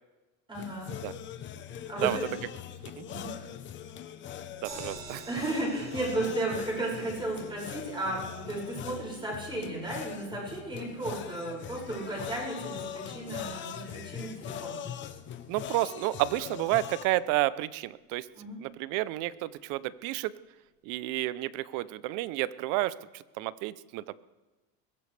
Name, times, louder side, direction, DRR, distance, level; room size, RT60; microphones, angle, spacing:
sound 1, 0.5-17.1, left 9 dB, 30° left, 0.8 m, -41 dB
voice 1, 0.5-0.9 1.8-2.3 2.9-3.3 5.3-14.8 18.3-18.6, right 2 dB, 10° right, -4 dB, 6.0 m, -34 dB
voice 2, 4.6-5.3 15.5-18.3 18.6-20.4 20.8-24.1, right 16 dB, 55° right, 18 dB, 0.6 m, -31 dB
sound 2, 4.6-16.9 17.3-17.4 17.6-17.7, right 3 dB, 75° right, 5.8 m, -52 dB
21.5 x 15.5 x 3.4 m, 1.1 s
supercardioid pair, 140°, 39 cm